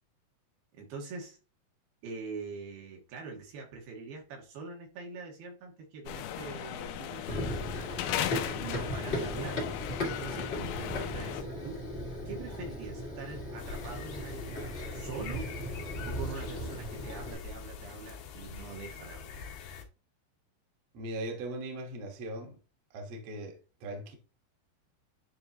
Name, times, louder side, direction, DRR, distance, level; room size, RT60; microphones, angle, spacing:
voice 1, 0.7-1.4 2.0-7.7 8.5-9.7 10.1-11.8 12.3-15.5 16.0-19.4, right 4 dB, 75° right, 3.1 m, -43 dB
sound 1, 6.1-11.4, left 11 dB, 90° left, 2.6 m, -37 dB
Run, 7.3-17.3, left 1 dB, 40° left, 0.9 m, -37 dB
sound 2, 13.6-19.8, left 6 dB, 70° left, 2.8 m, -44 dB
voice 2, 20.9-22.6 22.9-24.2, right 1 dB, 60° right, 1.8 m, -39 dB
9.9 x 3.4 x 2.8 m
omnidirectional pair, 4.4 m